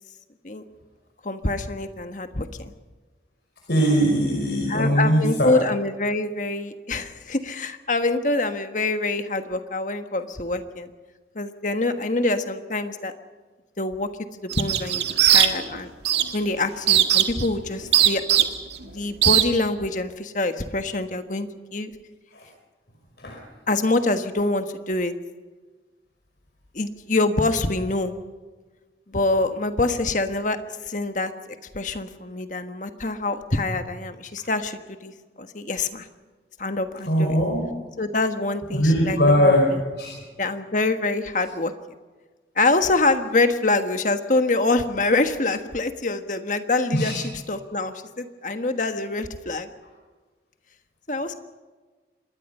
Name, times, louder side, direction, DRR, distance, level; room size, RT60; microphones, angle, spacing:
voice 1, 1.2-2.7 4.7-10.9 11.3-13.1 13.8-14.1 14.4-15.9 16.3-18.5 18.8-21.9 23.7-25.1 26.7-28.1 29.1-30.6 30.9-31.3 31.7-36.1 36.6-37.3 38.0-39.8 40.4-41.7 42.5-49.7 51.1-51.4, left 2 dB, 45° left, 8 dB, 1.4 m, -25 dB
voice 2, 3.7-5.5 22.3-22.4 23.2-23.4 37.1-37.7 38.7-39.6 40.0-40.1 46.9-47.2, equal, 65° left, -1 dB, 5.2 m, -20 dB
sound 1, 14.5-15.8 16.1-16.4 16.9-17.5 17.9-18.8 19.2-19.4, right 11 dB, 75° right, 1.8 m, -18 dB
26.5 x 21.0 x 5.6 m, 1.3 s
head